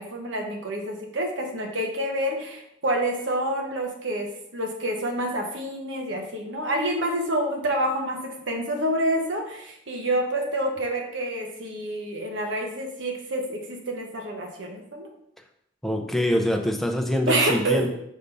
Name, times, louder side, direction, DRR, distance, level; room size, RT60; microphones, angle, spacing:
voice 1, 0.0-8.2 8.5-15.1 17.3-17.9, right 1 dB, 70° right, 2 dB, 1.1 m, -28 dB
voice 2, 15.8-17.9, left 1 dB, ahead, 3 dB, 0.6 m, -24 dB
5.5 x 5.2 x 3.4 m, 0.75 s
head